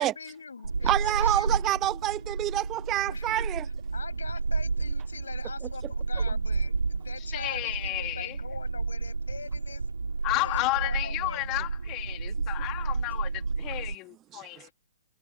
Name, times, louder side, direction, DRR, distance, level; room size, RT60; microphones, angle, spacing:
voice 1, 0.0-1.7 3.1-3.6 3.9-9.8 10.3-11.5, left 5 dB, 85° left, 7.7 m, -43 dB
sound 1, 0.6-13.9, right 4 dB, 90° right, 3.7 m, -31 dB
voice 2, 0.8-3.6 12.6-12.7 14.3-14.5, right 14 dB, 25° right, 0.6 m, -27 dB
voice 3, 7.3-8.4 10.2-14.7, left 21 dB, 35° left, 2.9 m, -32 dB
hypercardioid pair, 125°, 0 cm